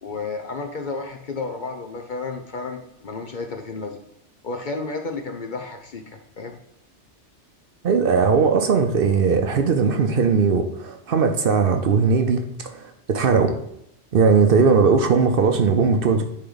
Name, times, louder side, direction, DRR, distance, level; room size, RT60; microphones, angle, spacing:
voice 1, 0.0-4.0 4.4-6.0 6.4-6.6, left 3 dB, 50° left, 4 dB, 0.7 m, -32 dB
voice 2, 7.8-13.5 14.1-16.2, right 5 dB, 60° right, 6 dB, 0.8 m, -19 dB
9.9 x 3.4 x 3.9 m, 0.79 s
omnidirectional pair, 1.2 m